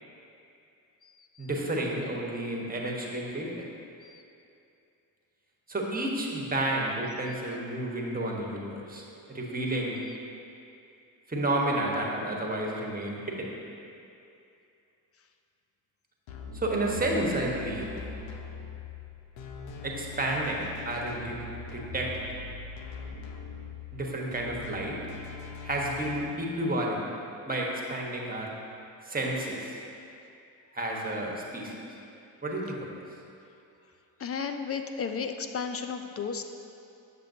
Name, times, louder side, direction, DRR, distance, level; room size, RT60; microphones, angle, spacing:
voice 1, 1.4-3.7 5.7-10.0 11.3-13.5 16.5-17.9 19.8-22.1 23.9-25.0 25.6-27.0 27.5-28.5 29.1-29.8 30.7-31.7 32.4-32.9, right 1 dB, 20° right, -2 dB, 1.2 m, -31 dB
sound 1, 16.3-26.2, left 4 dB, 80° left, 0.7 m, -42 dB
voice 2, 34.2-36.4, left 6 dB, 35° left, 7 dB, 0.4 m, -33 dB
7.4 x 5.9 x 2.8 m, 2.6 s
supercardioid pair, 55°, 45 cm